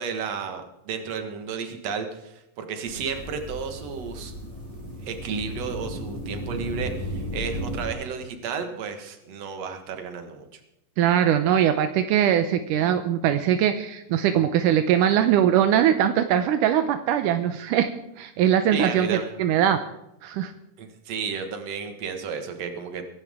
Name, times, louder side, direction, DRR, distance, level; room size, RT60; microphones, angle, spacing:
voice 1, 0.0-4.3 5.0-10.6 18.7-19.3 20.8-23.0, right 6 dB, 55° right, 6 dB, 2.6 m, -32 dB
sound 1, 2.9-7.9, equal, 35° right, 4.9 m, -34 dB
voice 2, 11.0-17.9 18.2-19.8 20.2-20.5, right 10 dB, 80° right, 8 dB, 2.3 m, -21 dB
23.0 x 12.0 x 3.7 m, 0.85 s
omnidirectional pair, 3.7 m